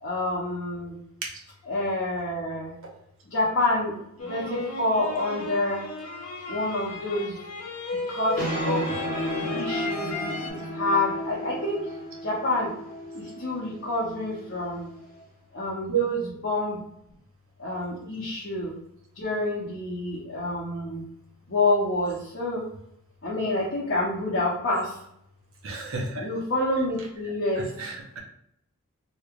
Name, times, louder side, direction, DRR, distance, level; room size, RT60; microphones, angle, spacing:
voice 1, 0.0-1.0 1.7-2.7 3.3-5.8 6.5-7.4 8.1-8.8 9.4-11.8 12.2-12.7 13.1-14.9 15.5-16.8 17.6-18.7 19.2-21.0 21.5-22.7 23.2-25.0 26.2-27.7, left 2 dB, 55° left, -6 dB, 0.8 m, -28 dB
sound 1, 4.2-10.5, left 2 dB, 80° left, 0.8 m, -34 dB
sound 2, 8.1-15.2, equal, 35° left, 1.2 m, -33 dB
voice 2, 25.6-26.3 27.8-28.2, right 7 dB, 60° right, -1 dB, 0.8 m, -29 dB
3.1 x 2.9 x 2.4 m, 0.75 s
head